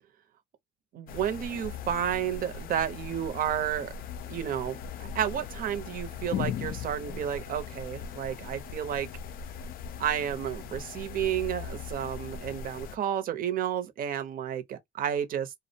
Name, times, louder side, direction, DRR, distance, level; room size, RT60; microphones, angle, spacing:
voice 1, 0.9-3.9 4.3-9.1 10.0-15.5, right 9 dB, 55° right, 0.7 m, -31 dB
sound 1, 1.1-13.0, left 7 dB, 60° left, 0.4 m, -39 dB
2.4 x 2.1 x 2.7 m
cardioid pair, 110°, 17 cm